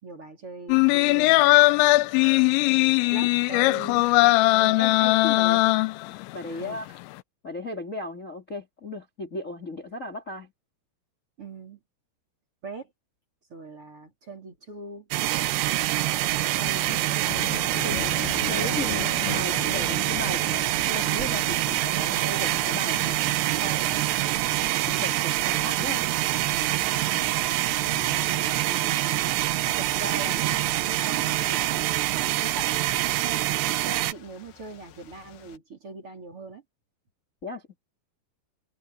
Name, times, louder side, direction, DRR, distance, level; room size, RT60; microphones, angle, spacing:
voice 1, 0.0-1.5 3.1-5.2 6.5-6.8 11.4-11.8 12.6-12.9 13.5-15.1 17.8-18.5 29.7-31.8 32.4-33.5 33.8-36.6, right 3 dB, 30° right, 4.1 m, -41 dB
sound 1, 0.7-6.3 6.7-6.8, left 21 dB, 85° left, 3.0 m, -20 dB
voice 2, 4.6-5.6 6.3-6.9 7.4-10.5 16.6-17.1 17.8-18.0 18.5-24.1 24.8-26.0 37.4-37.6, left 2 dB, 20° left, 2.7 m, -36 dB
sound 2, 15.1-34.1, right 16 dB, 75° right, 2.8 m, -25 dB
sound 3, 15.7-35.6, left 10 dB, 65° left, 3.1 m, -42 dB
omnidirectional pair, 5.2 m